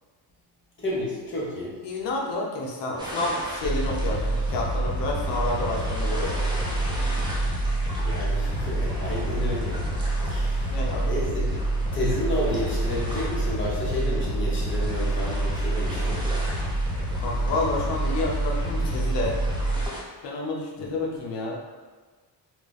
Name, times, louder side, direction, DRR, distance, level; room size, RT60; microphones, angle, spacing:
voice 1, 0.8-1.7 8.0-9.8 10.2-10.7 11.0-11.5 11.9-16.2, left 1 dB, 30° left, -5 dB, 0.9 m, -31 dB
voice 2, 1.8-6.4 10.7-11.1 17.2-19.4 20.2-21.6, left 2 dB, 85° left, -2 dB, 0.8 m, -29 dB
sound 1, 3.0-20.0, equal, 10° right, 0.6 m, -38 dB
sound 2, 3.6-19.9, right 1 dB, 70° right, 0.8 m, -27 dB
2.3 x 2.3 x 3.9 m, 1.4 s
cardioid pair, 120°, 41 cm